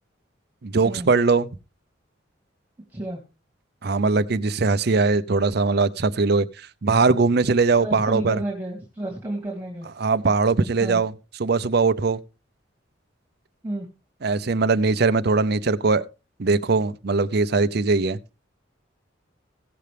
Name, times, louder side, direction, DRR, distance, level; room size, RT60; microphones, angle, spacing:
voice 1, 0.6-1.5 3.8-8.4 10.0-11.1 11.4-12.2 14.2-16.0 16.4-18.2, right 4 dB, 55° right, 0.6 m, -21 dB
voice 2, 2.9-3.2 7.8-9.9 10.8-11.0 13.6-13.9, right 1 dB, 10° right, 2.0 m, -31 dB
16.5 x 6.7 x 3.4 m
head